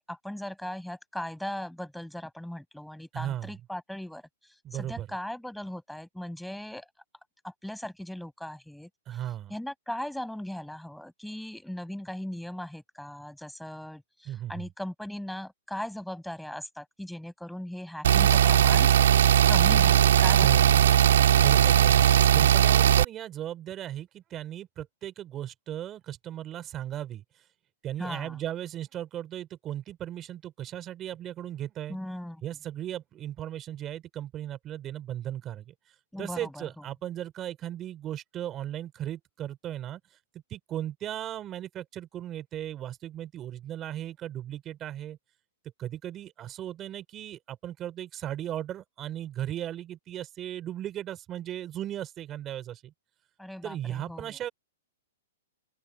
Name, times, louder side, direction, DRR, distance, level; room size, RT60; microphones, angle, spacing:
voice 1, 0.0-6.9 7.4-9.2 9.5-18.9 19.5-20.9 28.0-28.4 31.9-32.4 36.1-36.8 53.4-54.4, left 1 dB, ahead, 7.4 m, -38 dB
voice 2, 3.1-3.5 4.6-5.1 9.1-9.5 14.2-14.7 20.4-20.8 21.3-27.2 27.8-32.0 32.4-35.7 36.2-40.0 40.3-45.2 45.8-52.9 53.6-54.5, right 12 dB, 20° right, 4.1 m, -37 dB
sound 1, 18.0-23.0, right 10 dB, 75° right, 2.6 m, -19 dB
open air
hypercardioid pair, 160°, 0 cm